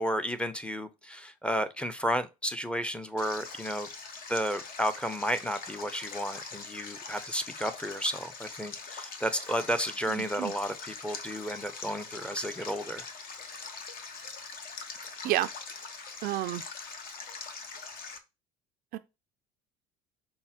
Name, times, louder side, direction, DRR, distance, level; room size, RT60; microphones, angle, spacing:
voice 1, 0.0-3.9 4.3-13.0, equal, 5° left, 0.6 m, -32 dB
Stream, 3.2-18.2, left 4 dB, 50° left, 1.0 m, -43 dB
voice 2, 10.1-10.5 15.2-15.5 16.2-16.6 18.9-19.0, right 15 dB, 55° right, 0.4 m, -30 dB
5.5 x 2.1 x 4.2 m
hypercardioid pair, 75°, 19 cm